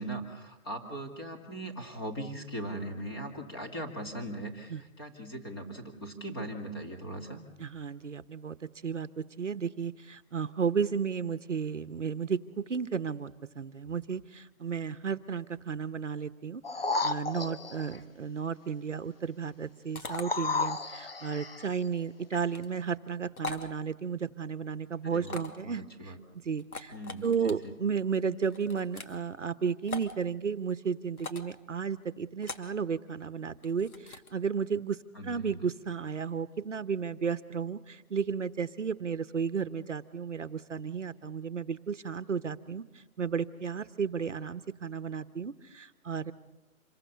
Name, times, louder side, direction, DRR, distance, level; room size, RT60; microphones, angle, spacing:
voice 1, 0.0-7.4 25.0-26.2 26.9-27.8 35.1-35.7, right 1 dB, 15° left, 2 dB, 2.2 m, -40 dB
voice 2, 7.6-16.6 17.0-26.1 26.4-26.9 27.2-35.0 35.2-46.3, right 6 dB, 55° right, 13 dB, 1.1 m, -33 dB
sound 1, 16.6-18.0 20.0-21.7 22.3-22.4, left 3 dB, 40° left, 1.1 m, -33 dB
sound 2, 19.9-20.2 22.4-22.7 23.4-23.7 25.2-25.6 26.6-27.5 28.5-29.2 29.9-30.1 31.2-31.5 32.4-32.7 33.6-34.3, left 4 dB, 85° left, 2.9 m, -41 dB
27.0 x 22.0 x 6.9 m, 0.97 s
hypercardioid pair, 180°, 43 cm